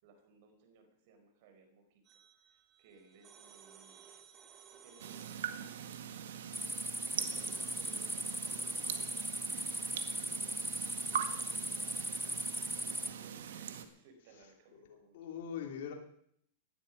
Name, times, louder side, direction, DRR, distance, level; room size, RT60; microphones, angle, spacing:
voice 1, 0.0-4.1 4.7-6.2 6.8-12.5 13.0-15.3, right 4 dB, 60° right, 6 dB, 4.7 m, -63 dB
sound 1, 2.1-12.7, right 7 dB, 30° right, 2.3 m, -60 dB
sound 2, 5.0-13.9, right 8 dB, 80° right, 1.8 m, -42 dB
sound 3, 6.5-13.1, equal, ahead, 0.6 m, -38 dB
voice 2, 12.8-13.3 14.7-14.8 15.1-15.9, left 8 dB, 65° left, 2 dB, 3.2 m, -43 dB
17.5 x 12.0 x 5.4 m, 0.67 s
hypercardioid pair, 130°, 0 cm